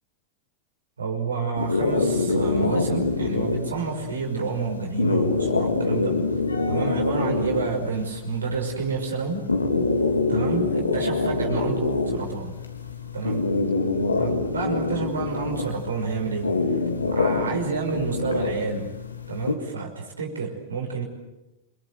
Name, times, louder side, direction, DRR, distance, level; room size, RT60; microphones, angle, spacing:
voice 1, 1.0-6.3 6.7-9.5 10.3-12.6 13.1-13.6 14.2-16.5 17.1-18.9 19.3-21.1, right 5 dB, 70° right, 2 dB, 5.6 m, -29 dB
sound 1, 1.6-19.5, left 3 dB, 80° left, 3.1 m, -26 dB
28.5 x 23.5 x 7.9 m, 0.96 s
figure-of-eight pair, 90°, 0 cm